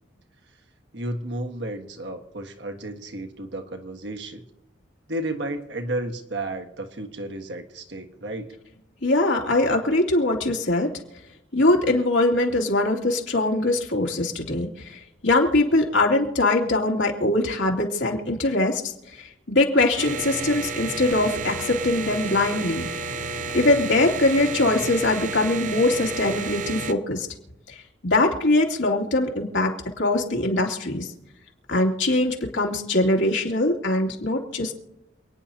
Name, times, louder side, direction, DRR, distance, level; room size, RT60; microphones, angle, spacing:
voice 1, 0.9-4.4 5.1-8.6, right 1 dB, 70° right, 5 dB, 1.6 m, -32 dB
voice 2, 9.0-10.9 11.5-18.8 19.2-22.9 23.5-27.3 28.0-31.1 31.7-34.8, left 2 dB, 90° left, -1 dB, 2.7 m, -22 dB
sound 1, 20.0-26.9, right 3 dB, 45° right, 0.7 m, -31 dB
28.5 x 9.9 x 2.9 m, 0.91 s
head